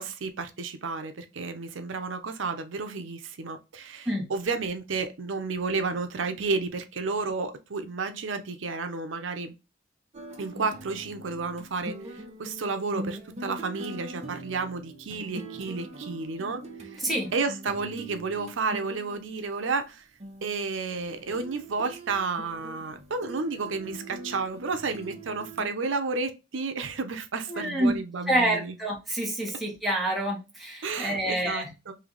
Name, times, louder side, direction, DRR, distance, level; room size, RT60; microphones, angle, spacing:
voice 1, 0.0-9.5 10.4-16.6 16.9-17.0 17.3-20.0 20.4-28.7 30.8-31.9, right 4 dB, 85° right, 0.6 m, -31 dB
sound 1, 10.1-19.4 20.2-25.7, right 2 dB, 35° right, 0.7 m, -42 dB
voice 2, 27.5-28.0 28.3-31.7, right 1 dB, ahead, 1.0 m, -27 dB
3.2 x 2.8 x 3.8 m
head